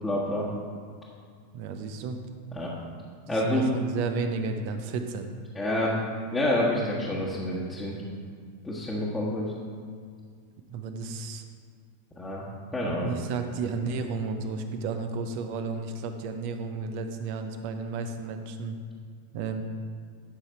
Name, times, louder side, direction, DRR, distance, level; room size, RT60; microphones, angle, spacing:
voice 1, 0.0-0.5 2.5-2.7 3.3-3.7 5.5-6.0 6.3-8.0 8.6-9.5 12.1-12.4 12.7-13.1, left 1 dB, 10° left, -7 dB, 1.4 m, -28 dB
voice 2, 1.5-2.2 3.3-5.3 10.7-11.4 13.0-18.8 19.3-19.6, right 4 dB, 45° right, 7 dB, 0.8 m, -32 dB
11.5 x 5.7 x 4.3 m, 2.1 s
figure-of-eight pair, 90°, 0 cm